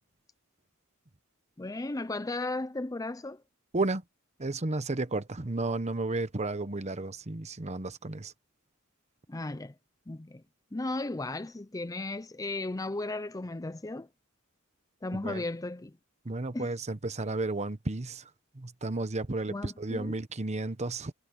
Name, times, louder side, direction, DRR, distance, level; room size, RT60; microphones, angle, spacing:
voice 1, 1.6-3.4 9.3-9.7 10.1-10.4 10.7-14.1 15.0-16.0 16.5-16.7 19.5-20.2, left 2 dB, 15° left, 0.5 m, -35 dB
voice 2, 4.4-8.3 15.2-15.4 16.2-18.3 18.5-21.1, right 2 dB, 30° right, 1.0 m, -33 dB
head